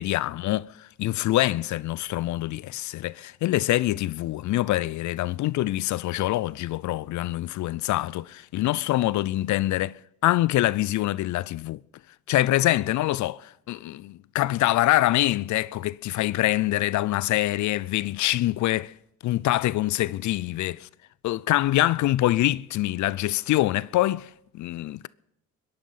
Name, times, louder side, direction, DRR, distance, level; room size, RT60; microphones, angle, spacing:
voice 1, 0.0-11.8 12.3-18.9 19.2-20.9 21.2-25.1, left 15 dB, 70° left, 0.5 m, -25 dB
23.0 x 10.5 x 5.7 m
cardioid pair, 90°, 30 cm